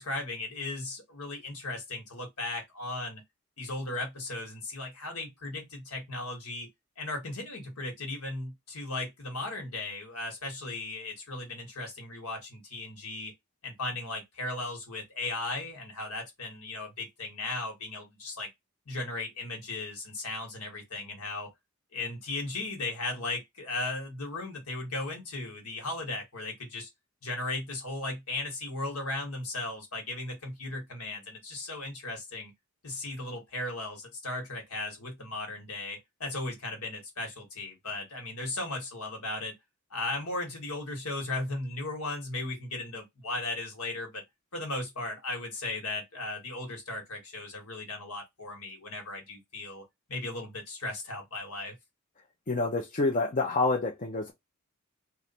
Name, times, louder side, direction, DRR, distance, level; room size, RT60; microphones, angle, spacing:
voice 1, 0.0-3.2 3.6-6.7 7.0-13.3 13.6-18.5 18.8-21.5 21.9-26.9 27.2-32.5 32.8-39.5 39.9-44.2 44.5-49.8 50.1-51.7, left 2 dB, 80° left, 1.6 m, -36 dB
voice 2, 52.5-54.3, left 3 dB, 35° left, 0.6 m, -27 dB
3.2 x 2.5 x 4.1 m
head